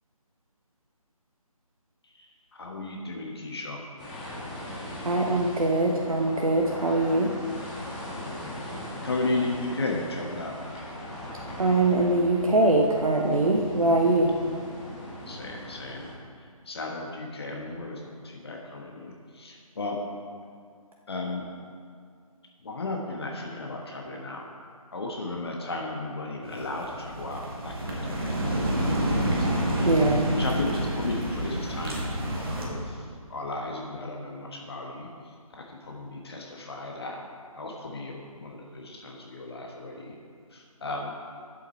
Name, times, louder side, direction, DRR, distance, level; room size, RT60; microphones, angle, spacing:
voice 1, 2.5-3.8 8.1-10.6 15.3-16.1 16.7-20.0 21.1-21.4 22.6-24.4 24.9-29.5 30.3-33.0 33.3-35.1 35.7-37.2 37.6-40.1 40.5-41.1, left 2 dB, 45° left, 0 dB, 1.2 m, -35 dB
sound 1, 4.0-16.1, left 1 dB, 15° left, 1.7 m, -39 dB
voice 2, 5.0-7.3 11.6-14.3 29.8-30.3, right 2 dB, 70° right, 0 dB, 1.0 m, -22 dB
sound 2, 26.4-32.6, right 1 dB, 40° right, 2.0 m, -28 dB
11.0 x 7.8 x 4.4 m, 2.2 s
figure-of-eight pair, 155°, 19 cm